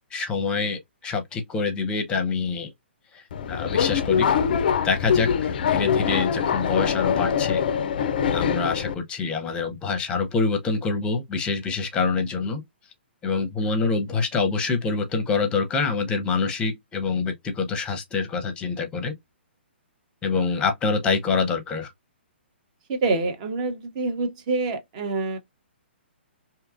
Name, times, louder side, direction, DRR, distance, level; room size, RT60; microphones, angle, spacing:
voice 1, 0.1-2.7 3.1-3.2 3.5-4.3 4.8-7.6 8.3-12.6 13.2-19.1 20.2-21.9, left 4 dB, 15° left, 0.6 m, -26 dB
Subway metro underground, 3.3-8.9, left 7 dB, 50° left, 0.3 m, -23 dB
voice 2, 22.9-25.4, right 3 dB, 40° right, 0.8 m, -26 dB
2.7 x 2.3 x 2.4 m
figure-of-eight pair, 120°, 6 cm